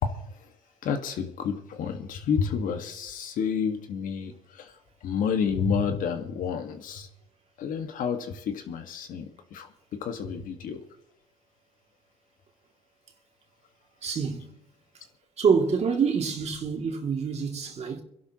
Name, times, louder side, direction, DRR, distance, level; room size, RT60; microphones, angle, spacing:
voice 1, 0.8-4.7 5.0-7.1 7.6-9.7 10.0-10.8, left 6 dB, 65° left, 1.8 m, -30 dB
voice 2, 14.0-14.5 15.4-18.0, right 6 dB, 45° right, 2.5 m, -26 dB
25.5 x 11.5 x 3.0 m
supercardioid pair, 80°, 15 cm